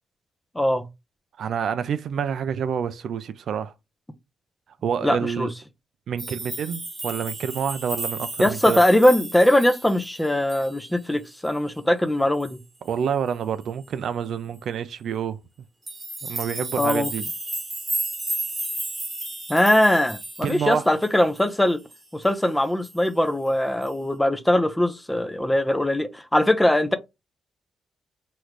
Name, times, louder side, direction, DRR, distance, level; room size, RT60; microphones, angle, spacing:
voice 1, 0.6-0.9 5.0-5.5 8.4-12.6 16.8-17.1 19.5-21.8 22.1-27.0, left 1 dB, 10° left, 0.6 m, -21 dB
voice 2, 1.4-3.7 4.8-5.5 6.1-8.8 12.8-15.4 16.2-17.2 20.4-20.9, right 7 dB, 70° right, 0.3 m, -28 dB
sound 1, 6.2-11.2 11.4-11.8 12.4-12.7 15.9-21.5 21.9-22.4 22.8-23.2 23.8-24.0, right 2 dB, 20° right, 1.3 m, -34 dB
3.1 x 2.4 x 3.2 m
cardioid pair, 70°, 0 cm